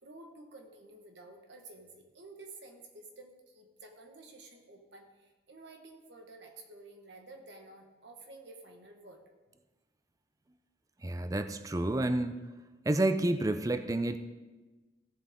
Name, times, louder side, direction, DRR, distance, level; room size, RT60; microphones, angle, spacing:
voice 1, 0.0-9.2, right 2 dB, 90° right, 3 dB, 1.5 m, -52 dB
voice 2, 11.0-12.3 12.9-14.2, right 1 dB, 20° right, 10 dB, 0.4 m, -29 dB
15.5 x 7.3 x 3.8 m, 1.2 s
head